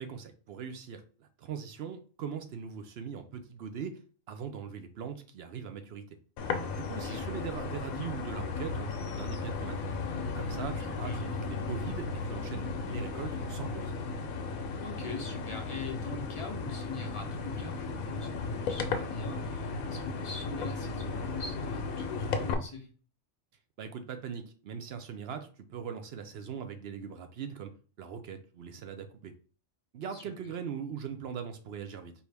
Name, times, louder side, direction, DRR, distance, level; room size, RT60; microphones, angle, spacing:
voice 1, 0.0-4.0 4.3-6.2 6.8-9.8 10.4-13.9 23.8-27.7 28.0-29.3 29.9-32.1, right 7 dB, 65° right, 8 dB, 0.7 m, -41 dB
sound 1, 6.4-22.5, left 4 dB, 85° left, 1.1 m, -35 dB
sound 2, 6.5-14.2, equal, 90° right, 1.3 m, -50 dB
voice 2, 14.8-22.9 30.1-30.3, left 4 dB, 35° left, 2 dB, 0.5 m, -42 dB
4.5 x 2.7 x 3.3 m, 0.38 s
omnidirectional pair, 1.4 m